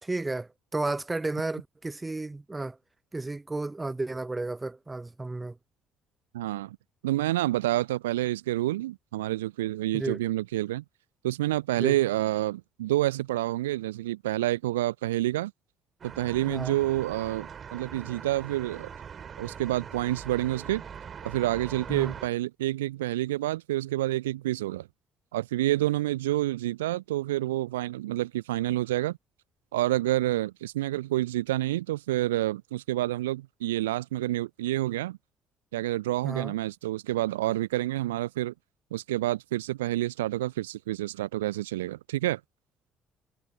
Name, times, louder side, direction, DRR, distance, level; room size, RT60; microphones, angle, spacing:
voice 1, 0.0-2.8 3.1-5.6 9.9-10.2 11.8-12.0 16.5-16.8 21.9-22.1 36.2-36.5, right 2 dB, 15° right, 1.0 m, -32 dB
voice 2, 6.3-6.8 7.0-10.8 11.2-15.5 16.2-18.9 19.4-20.8 21.2-24.9 25.3-29.2 29.7-35.2 35.7-38.5 38.9-42.4, right 15 dB, 75° right, 0.6 m, -28 dB
sound 1, 16.0-22.3, right 7 dB, 40° right, 3.9 m, -42 dB
figure-of-eight pair, 50°, 0 cm